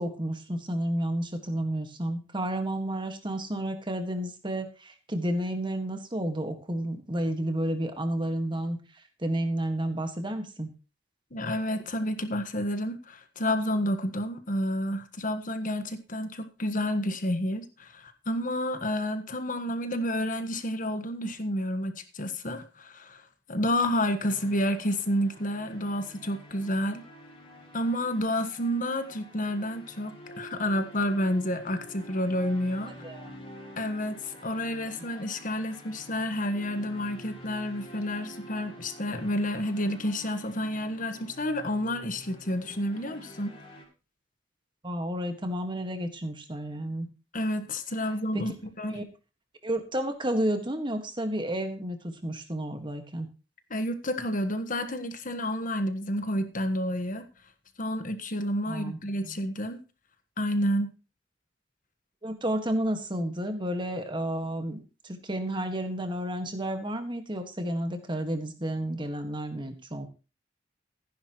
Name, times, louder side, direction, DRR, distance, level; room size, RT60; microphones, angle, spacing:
voice 1, 0.0-8.8 9.2-10.7 33.0-33.4 44.8-47.1 48.3-48.5 48.9-49.0 49.6-53.3 58.7-59.4 62.2-70.1, right 1 dB, 25° right, 7 dB, 1.7 m, -31 dB
voice 2, 11.3-23.2 23.5-27.0 27.7-32.9 33.8-43.6 47.3-49.0 53.7-57.2 57.8-59.8 60.4-60.9, left 1 dB, 45° left, 9 dB, 1.4 m, -30 dB
sound 1, 24.2-43.8, equal, 30° left, 2.8 m, -48 dB
15.0 x 10.0 x 3.1 m, 0.32 s
head